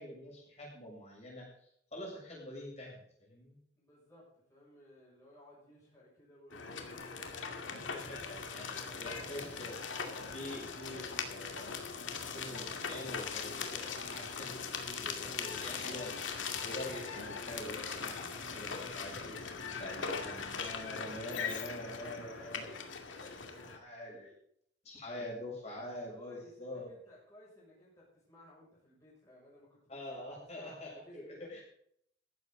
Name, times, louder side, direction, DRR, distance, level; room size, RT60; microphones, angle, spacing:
voice 1, 0.0-1.5 1.9-3.6 7.7-11.7 12.3-19.4 19.7-22.8 23.2-24.3 24.8-26.9 29.9-31.6, left 1 dB, 35° left, -3 dB, 7.3 m, -45 dB
voice 2, 3.8-7.8 8.4-9.3 26.1-29.8 30.1-31.5, equal, 15° left, -6 dB, 6.5 m, -58 dB
sound 1, 6.5-23.8, left 5 dB, 85° left, 2.3 m, -40 dB
15.5 x 12.5 x 3.9 m, 0.68 s
head